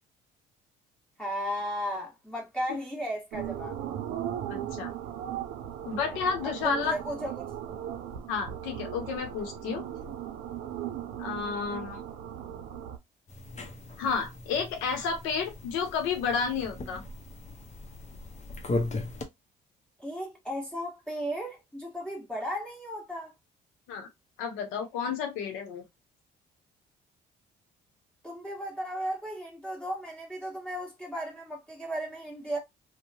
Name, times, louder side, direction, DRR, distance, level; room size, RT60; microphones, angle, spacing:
voice 1, 1.2-3.8 6.4-7.4 20.0-23.3 28.2-32.6, equal, 5° left, 1.3 m, -35 dB
sound 1, 3.3-13.0, right 10 dB, 85° right, 0.5 m, -38 dB
voice 2, 4.5-4.9 5.8-6.9 8.3-9.8 11.2-12.0 14.0-17.0 23.9-24.1 24.4-25.9, left 6 dB, 90° left, 0.8 m, -31 dB
sound 2, 13.3-19.3, left 2 dB, 35° left, 0.8 m, -38 dB
2.8 x 2.2 x 2.7 m
supercardioid pair, 65°, 20 cm